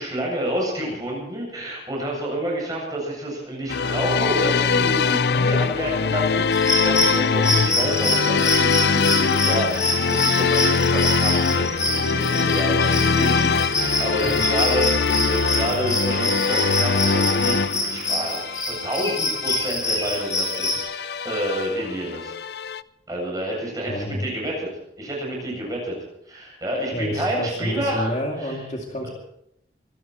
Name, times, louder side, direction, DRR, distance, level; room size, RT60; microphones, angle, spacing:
voice 1, 0.0-22.3 23.1-24.7 25.0-26.0 26.3-28.1 28.4-28.5, right 1 dB, 20° right, -2 dB, 8.0 m, -29 dB
sound 1, 3.7-22.8, left 5 dB, 70° left, 0.5 m, -22 dB
sound 2, 6.5-20.8, left 1 dB, 20° left, 4.0 m, -25 dB
voice 2, 14.1-14.5 23.9-24.3 26.9-29.1, equal, 40° left, 1 dB, 2.3 m, -29 dB
25.0 x 13.0 x 4.4 m, 0.77 s
head